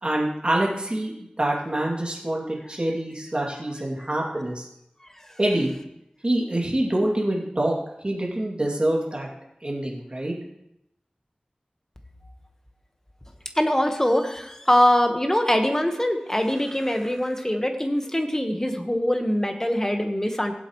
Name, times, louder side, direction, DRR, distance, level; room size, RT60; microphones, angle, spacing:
voice 1, 0.0-4.7 5.4-5.7 6.2-7.7 8.0-9.3 9.6-10.3, right 1 dB, 40° right, -2 dB, 2.7 m, -25 dB
voice 2, 13.5-20.5, left 1 dB, 15° left, 4 dB, 1.4 m, -23 dB
17.5 x 8.0 x 3.2 m, 0.81 s
wide cardioid pair, 55°, 3 cm